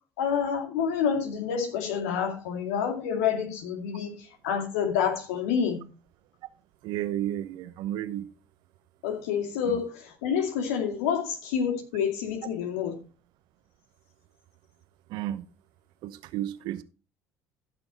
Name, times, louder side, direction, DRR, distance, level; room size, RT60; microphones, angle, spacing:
voice 1, 0.2-5.8 9.0-12.9, left 7 dB, 75° left, 2.2 m, -28 dB
voice 2, 6.8-8.3 9.7-9.8 15.1-15.4 16.0-16.8, right 12 dB, 65° right, 0.9 m, -32 dB
14.5 x 6.1 x 4.0 m
hypercardioid pair, 65°, 8 cm